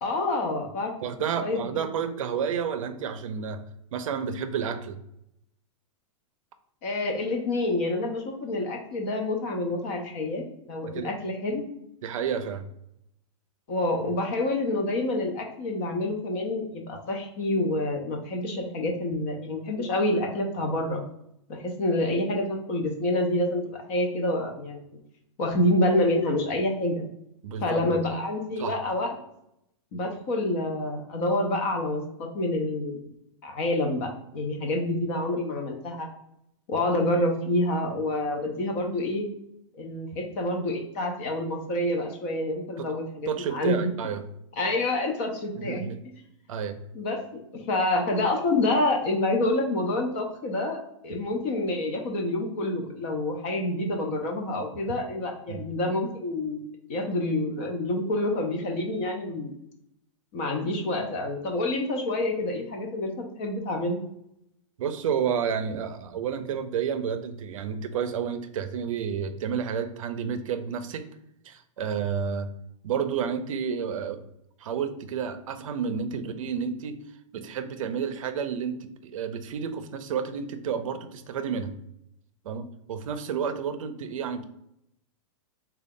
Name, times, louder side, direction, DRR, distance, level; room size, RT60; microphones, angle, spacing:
voice 1, 0.0-0.9 1.4-1.7 6.8-11.7 13.7-21.0 21.5-24.8 25.4-27.0 27.6-29.1 29.9-33.0 33.4-36.1 36.7-39.3 39.7-43.9 44.6-45.9 46.9-47.2 47.5-56.6 56.9-59.5 60.3-64.0, left 1 dB, 25° left, 2 dB, 0.4 m, -27 dB
voice 2, 1.0-3.6 3.9-5.0 10.9-11.1 12.0-12.7 27.4-28.0 28.6-28.8 42.8-42.9 43.3-44.2 45.5-46.0 46.5-46.8 55.5-55.6 64.8-71.0 71.4-72.5 72.8-74.2 74.6-77.0 77.3-81.8 82.4-84.4, right 7 dB, 80° right, 9 dB, 0.5 m, -30 dB
3.6 x 2.3 x 3.5 m, 0.79 s
supercardioid pair, 175°, 17 cm